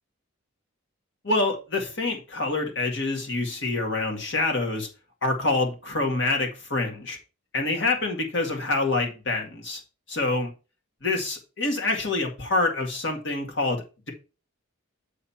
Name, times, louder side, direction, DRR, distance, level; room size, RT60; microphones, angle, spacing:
voice 1, 1.2-4.9 5.2-7.2 7.5-9.8 10.1-10.5 11.0-14.1, left 2 dB, 55° left, 2.1 m, -26 dB
8.7 x 3.8 x 5.8 m
head